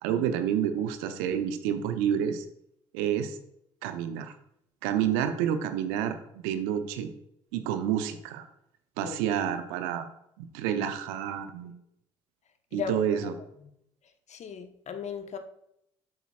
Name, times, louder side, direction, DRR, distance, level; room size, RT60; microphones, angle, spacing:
voice 1, 0.0-2.5 2.9-3.4 3.8-4.3 4.8-7.1 7.5-8.5 9.0-10.1 10.4-11.7 12.7-13.3, right 9 dB, 70° right, 0.8 m, -29 dB
voice 2, 12.7-13.0 14.3-15.4, left 7 dB, 45° left, 1.0 m, -36 dB
10.0 x 8.1 x 2.4 m
figure-of-eight pair, 45°, 15 cm